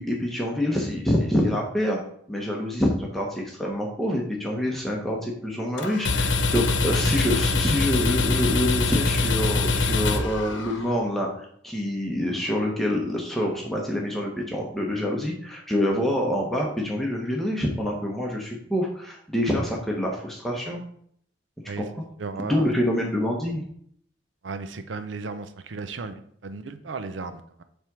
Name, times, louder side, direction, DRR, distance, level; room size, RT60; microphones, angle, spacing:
voice 1, 0.0-2.0 2.3-20.8 21.8-21.9 22.4-23.6, left 1 dB, ahead, -2 dB, 0.9 m, -26 dB
sound 1, 5.8-11.0, left 3 dB, 80° left, 0.9 m, -24 dB
voice 2, 22.2-22.7 24.4-27.6, right 4 dB, 80° right, 10 dB, 0.6 m, -35 dB
7.4 x 3.5 x 6.1 m, 0.66 s
head